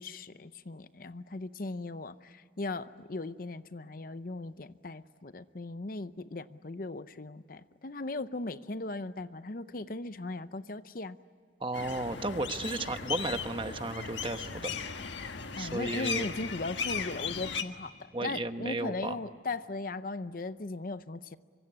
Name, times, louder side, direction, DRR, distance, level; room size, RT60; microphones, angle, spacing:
voice 1, 0.0-11.2 15.5-21.4, left 2 dB, 50° left, 13 dB, 0.7 m, -38 dB
voice 2, 11.6-14.7 15.6-16.3 18.1-19.2, right 2 dB, 25° right, 8 dB, 1.1 m, -34 dB
sound 1, 11.7-17.6, left 6 dB, 80° left, 1.5 m, -37 dB
25.0 x 24.0 x 9.8 m, 2.1 s
head